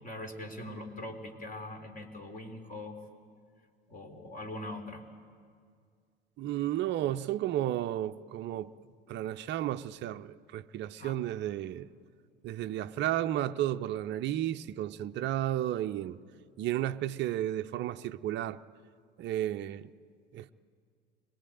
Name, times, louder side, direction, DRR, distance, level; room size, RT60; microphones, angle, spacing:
voice 1, 0.0-3.0 3.9-5.0 11.0-11.2, left 1 dB, 30° left, 4.0 m, -42 dB
voice 2, 6.4-8.7 9.1-11.9 12.4-16.2 16.6-18.6 19.2-19.9 20.3-20.5, right 12 dB, 35° right, 0.7 m, -33 dB
24.5 x 20.5 x 9.3 m
figure-of-eight pair, 65°, 30 cm